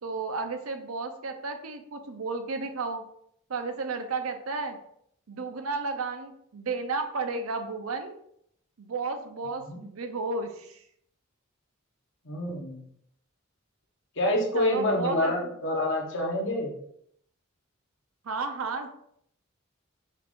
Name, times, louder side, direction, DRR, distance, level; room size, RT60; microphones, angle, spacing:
voice 1, 0.0-3.0 3.5-4.8 5.3-8.2 8.8-10.8 14.6-15.3 18.2-18.9, right 4 dB, 85° right, 6 dB, 0.6 m, -33 dB
voice 2, 12.2-12.8 14.2-16.8, left 1 dB, 60° left, 0 dB, 1.0 m, -27 dB
5.5 x 2.5 x 3.6 m, 0.70 s
head